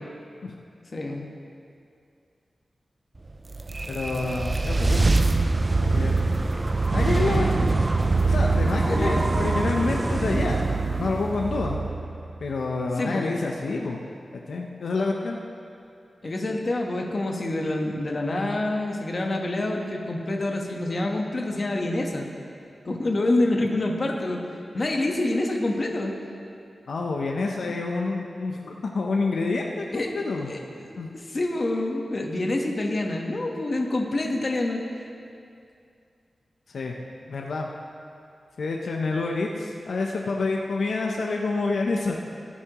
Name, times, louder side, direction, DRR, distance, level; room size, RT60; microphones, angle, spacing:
voice 1, 0.9-1.2 8.9-9.2 13.0-13.3 16.2-22.2 22.8-24.4 24.7-26.1 29.9-30.1 30.4-30.9 31.1-34.8, left 2 dB, 45° left, 1 dB, 1.2 m, -27 dB
sound 1, 3.3-12.6, right 3 dB, 30° right, 0.5 m, -24 dB
voice 2, 3.9-5.1 5.8-6.2 6.9-7.5 8.2-10.7 10.9-11.8 12.4-14.1 14.5-15.4 26.9-29.9 30.1-30.5 31.0-31.1 36.7-36.9 37.3-37.7 38.6-42.1, left 3 dB, 85° left, 0 dB, 0.8 m, -28 dB
18.0 x 8.5 x 3.0 m, 2.5 s
wide cardioid pair, 100°, 0 cm